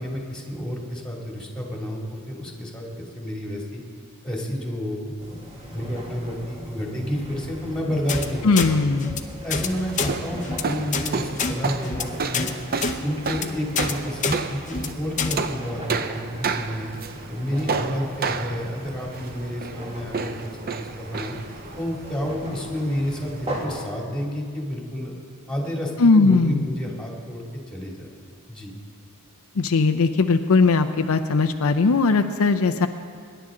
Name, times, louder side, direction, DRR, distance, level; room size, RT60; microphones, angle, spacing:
voice 1, 0.0-3.8 4.2-5.2 5.6-9.0 9.4-12.6 13.0-16.9 17.3-21.3 21.8-25.1 25.5-28.2 28.5-28.7, equal, 5° left, -1 dB, 2.5 m, -30 dB
sound 1, 5.2-23.7, right 1 dB, 25° right, 2.0 m, -39 dB
sound 2, 8.1-8.3 8.6-8.7 9.0-9.2 9.5-9.7 9.9-10.1 10.4-10.6 10.9-11.1 11.4-11.5 11.8-12.0 12.3-12.5 12.8-12.9 13.3-13.5 13.8-13.9 14.2-14.4 14.7-14.9 15.2-15.3, left 5 dB, 35° left, 0.9 m, -26 dB
voice 2, 8.4-9.2 26.0-26.6 29.6-32.9, left 4 dB, 65° left, 7 dB, 0.5 m, -19 dB
sound 3, 9.6-23.9, right 5 dB, 40° right, 0.6 m, -32 dB
25.5 x 11.0 x 3.8 m, 2.2 s
head